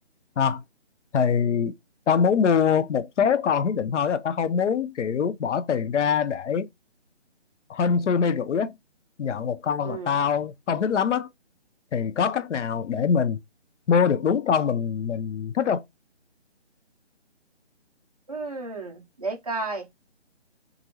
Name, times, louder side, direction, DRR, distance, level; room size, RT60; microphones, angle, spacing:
voice 1, 1.1-1.7 2.1-6.7 7.7-8.7 9.2-11.3 11.9-13.4 13.9-15.8, left 6 dB, 90° left, 0.5 m, -23 dB
voice 2, 9.8-10.2 18.3-19.9, right 3 dB, 35° right, 0.5 m, -32 dB
2.9 x 2.5 x 2.7 m
hypercardioid pair, 165°, 35 cm